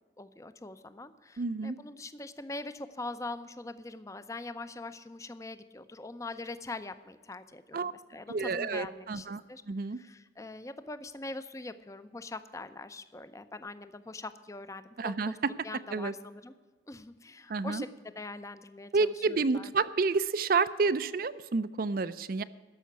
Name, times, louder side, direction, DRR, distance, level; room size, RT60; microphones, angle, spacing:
voice 1, 0.2-9.6 10.0-15.4 15.6-16.5 16.9-17.9 18.2-19.7, left 2 dB, 20° left, 12 dB, 0.6 m, -43 dB
voice 2, 1.4-1.8 7.7-7.9 8.3-9.4 9.7-10.0 15.0-15.5 15.9-16.1 17.5-17.8 18.9-22.4, right 4 dB, 55° right, 14 dB, 0.5 m, -29 dB
13.5 x 5.7 x 9.3 m, 1.4 s
head